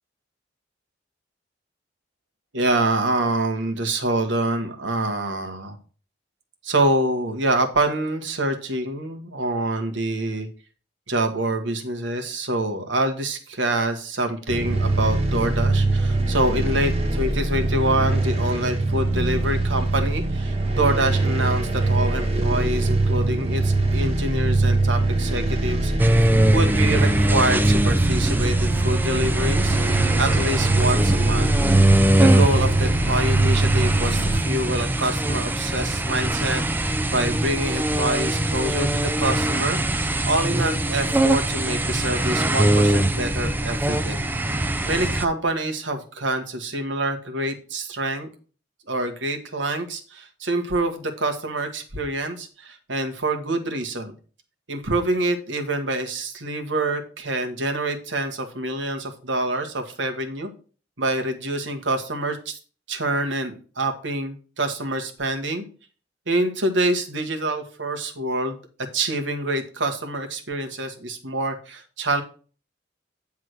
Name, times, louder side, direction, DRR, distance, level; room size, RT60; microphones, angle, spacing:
voice 1, 2.5-5.8 6.6-10.5 11.1-26.2 26.5-31.5 31.9-44.3 44.5-48.3 48.9-54.1 54.7-60.5 61.0-62.6 62.9-65.6 66.3-68.6 68.9-72.2, right 1 dB, 90° right, 5 dB, 1.5 m, -26 dB
sound 1, 14.5-34.4, right 2 dB, 35° right, 1.3 m, -22 dB
sound 2, 26.0-45.2, right 1 dB, 10° right, 0.5 m, -22 dB
9.4 x 3.7 x 6.3 m, 0.39 s
head